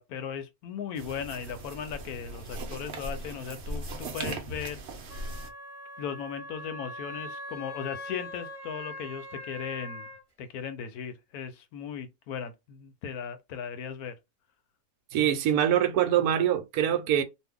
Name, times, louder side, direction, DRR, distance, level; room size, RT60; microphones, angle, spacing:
voice 1, 0.0-4.8 6.0-10.1 10.4-14.2, left 7 dB, 75° left, 1.1 m, -37 dB
sound 1, 1.0-5.5, right 2 dB, 55° right, 0.8 m, -38 dB
Wind instrument woodwind instrument, 5.1-10.2, left 1 dB, 20° right, 1.0 m, -42 dB
voice 2, 15.1-17.2, right 10 dB, 75° right, 1.1 m, -24 dB
2.6 x 2.3 x 3.5 m
omnidirectional pair, 1.7 m